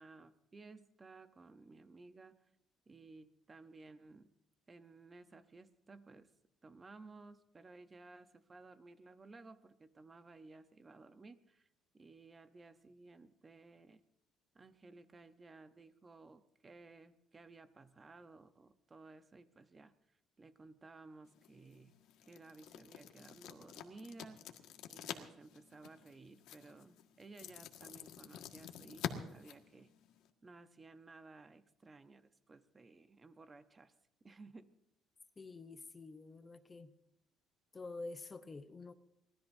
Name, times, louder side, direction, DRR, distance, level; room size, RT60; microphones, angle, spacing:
voice 1, 0.0-2.4 2.9-4.3 4.7-6.3 6.6-11.7 11.9-14.0 14.5-22.0 22.3-24.4 24.9-29.9 30.4-33.9 34.2-34.7, right 3 dB, 20° right, 0.8 m, -57 dB
sound 1, 21.3-30.3, left 10 dB, 75° left, 1.6 m, -48 dB
voice 2, 35.4-36.9 37.7-38.9, left 3 dB, 20° left, 0.7 m, -48 dB
24.5 x 19.0 x 2.7 m
cardioid pair, 160°, 0 cm